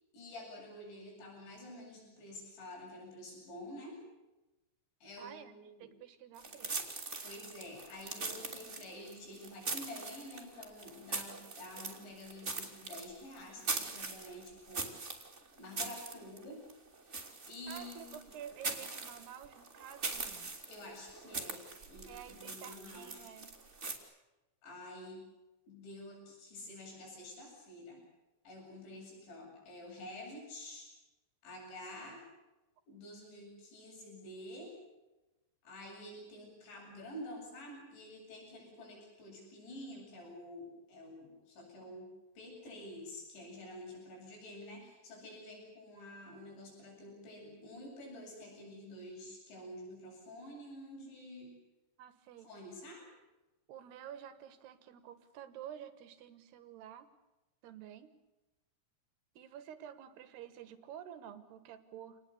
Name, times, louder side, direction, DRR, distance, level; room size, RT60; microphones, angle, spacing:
voice 1, 0.1-4.0 5.0-5.9 7.2-14.9 15.6-16.6 17.1-18.3 20.7-23.3 24.6-25.2 25.7-28.0 28.5-30.9 31.4-32.2 32.9-34.7 35.6-42.1 42.4-51.6 52.4-53.1, left 1 dB, 60° left, 0 dB, 10.5 m, -49 dB
voice 2, 5.2-6.9 17.7-20.5 22.0-23.6 52.0-52.5 53.7-57.1 57.6-58.1 59.4-62.2, right 10 dB, 70° right, 11 dB, 2.8 m, -50 dB
sound 1, 6.3-24.0, right 3 dB, 20° right, 2.0 m, -42 dB
28.0 x 20.0 x 8.5 m, 1.0 s
omnidirectional pair, 5.9 m